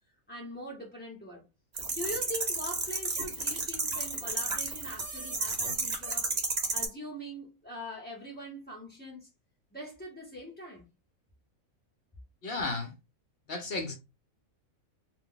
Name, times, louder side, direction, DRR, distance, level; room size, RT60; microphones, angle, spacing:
voice 1, 0.3-1.4 1.9-6.3 6.7-9.3 9.7-10.9, equal, 15° left, 0.3 m, -42 dB
sound 1, 1.8-6.8, right 3 dB, 40° right, 0.7 m, -32 dB
voice 2, 12.4-12.9 13.5-13.9, left 3 dB, 60° left, 0.6 m, -33 dB
2.3 x 2.0 x 3.7 m
omnidirectional pair, 1.5 m